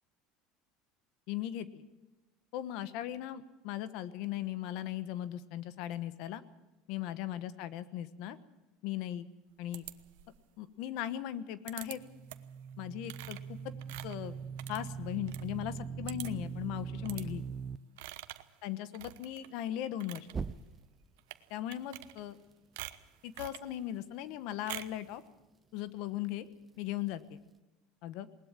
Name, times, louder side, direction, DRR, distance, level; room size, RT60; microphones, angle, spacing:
voice 1, 1.3-1.8 2.5-6.4 6.9-8.4 8.8-9.3 9.6-9.9 10.6-12.0 12.8-13.6 14.0-14.4 14.7-17.4 18.6-20.3 21.5-22.4 23.2-25.2 25.7-26.5 26.8-27.4 28.0-28.3, left 12 dB, 60° left, 14 dB, 1.2 m, -38 dB
sound 1, 9.7-10.4 11.7-12.0 12.3-12.6 13.0-15.4 15.7-15.8 16.1-16.5 17.0-17.3 18.0-18.5 18.9-19.5 19.9-20.3 21.2-21.4 21.7-22.4 22.8-23.7 24.7-25.0, right 17 dB, 85° right, 1.1 m, -46 dB
sound 2, 12.0-17.8 20.3-21.1, right 6 dB, 15° right, 0.6 m, -41 dB
20.5 x 19.5 x 7.4 m, 1.1 s
cardioid pair, 150°, 0 cm